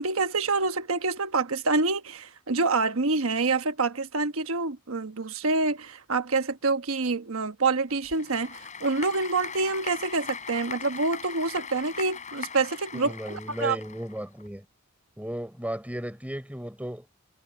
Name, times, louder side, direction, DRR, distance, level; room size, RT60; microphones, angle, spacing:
voice 1, 0.0-13.8, right 3 dB, 70° right, 1.2 m, -27 dB
Applause / Crowd, 7.9-14.5, left 6 dB, 35° left, 5.9 m, -40 dB
voice 2, 12.9-14.6 15.2-17.1, right 1 dB, 5° right, 4.5 m, -35 dB
head